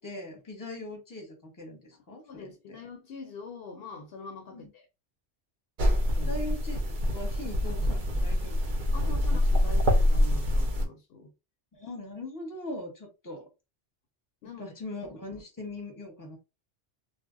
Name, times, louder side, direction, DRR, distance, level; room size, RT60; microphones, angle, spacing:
voice 1, 0.0-2.5 4.5-4.6 6.1-8.6 9.0-9.6 11.7-13.4 14.6-16.4, left 1 dB, 20° left, 0.8 m, -40 dB
voice 2, 1.9-4.9 6.0-6.4 8.9-11.3 14.4-14.7, left 4 dB, 65° left, 0.7 m, -44 dB
sound 1, 5.8-10.9, left 1 dB, 55° right, 0.6 m, -25 dB
2.1 x 2.0 x 3.6 m
omnidirectional pair, 1.2 m